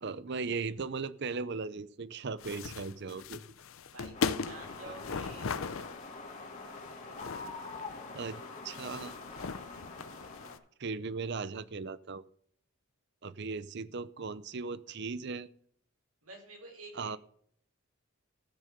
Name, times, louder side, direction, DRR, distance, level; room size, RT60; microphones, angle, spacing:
voice 1, 0.0-3.4 8.1-9.1 10.8-12.2 13.2-15.5 16.9-17.2, right 4 dB, 50° right, 17 dB, 0.6 m, -37 dB
sound 1, 2.4-10.6, left 5 dB, 65° left, 0.6 m, -39 dB
voice 2, 3.9-5.6 16.2-17.2, right 2 dB, 80° right, 0 dB, 5.3 m, -49 dB
sound 2, 4.1-10.6, left 3 dB, 35° left, 2.3 m, -45 dB
14.5 x 6.4 x 6.6 m, 0.63 s
head